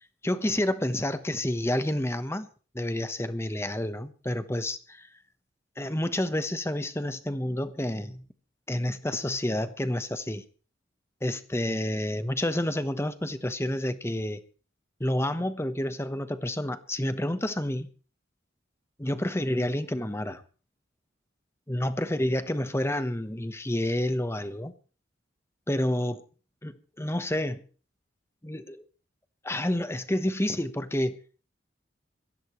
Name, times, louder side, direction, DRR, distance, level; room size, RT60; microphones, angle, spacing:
voice 1, 0.0-2.5 2.7-5.1 5.8-8.3 8.7-10.4 11.2-14.4 15.0-17.9 19.0-20.4 21.7-24.7 25.7-26.2 26.6-27.6 28.4-28.8 29.4-31.2, left 1 dB, 15° left, 11 dB, 1.0 m, -29 dB
22.0 x 16.0 x 3.1 m, 0.38 s
head